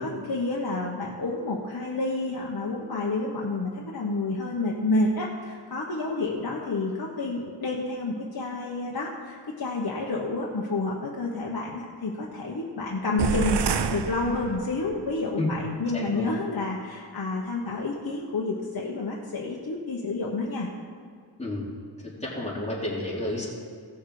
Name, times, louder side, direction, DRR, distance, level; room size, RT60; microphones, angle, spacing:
voice 1, 0.0-13.6 13.9-20.7, left 2 dB, 55° left, -3 dB, 1.2 m, -29 dB
sound 1, 13.2-15.0, right 6 dB, 65° right, 0.6 m, -28 dB
voice 2, 15.9-16.3 21.4-21.6 22.0-23.5, left 1 dB, 15° left, -6 dB, 3.5 m, -31 dB
16.5 x 6.4 x 4.9 m, 2.2 s
wide cardioid pair, 70°, 44 cm